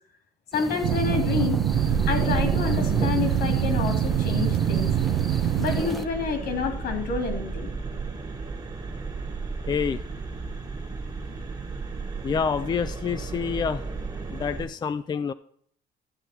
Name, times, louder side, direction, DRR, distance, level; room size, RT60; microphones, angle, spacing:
voice 1, 0.5-1.6 2.1-4.9 5.6-7.7, left 5 dB, 70° left, 4 dB, 2.9 m, -28 dB
sound 1, 0.5-6.1, equal, ahead, 0.7 m, -35 dB
sound 2, 0.8-5.8, right 11 dB, 70° right, 0.7 m, -24 dB
sound 3, 1.7-14.7, right 4 dB, 25° right, 1.5 m, -33 dB
voice 2, 9.7-10.0 12.2-13.8 14.3-15.3, left 6 dB, 25° left, 12 dB, 0.4 m, -27 dB
13.5 x 8.1 x 4.3 m, 0.62 s
cardioid pair, 110°, 17 cm